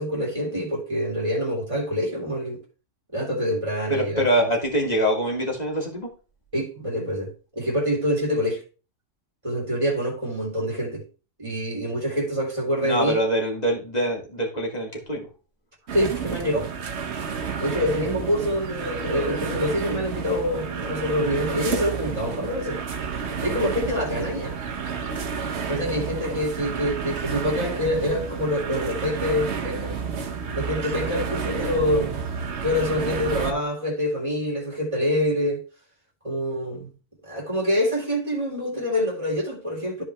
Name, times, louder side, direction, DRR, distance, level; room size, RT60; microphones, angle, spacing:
voice 1, 0.0-2.6 3.1-4.3 6.5-8.6 9.4-11.0 11.4-13.2 15.9-16.7 17.6-22.8 23.4-24.6 25.7-30.0 30.5-32.3 32.6-35.6 36.2-36.9 37.3-40.0, equal, 25° right, 3.0 m, -26 dB
voice 2, 3.9-6.1 12.8-15.3, equal, 30° left, 2.7 m, -24 dB
sound 1, 15.9-33.5, right 6 dB, 60° right, 1.2 m, -30 dB
13.5 x 4.8 x 3.4 m
omnidirectional pair, 1.3 m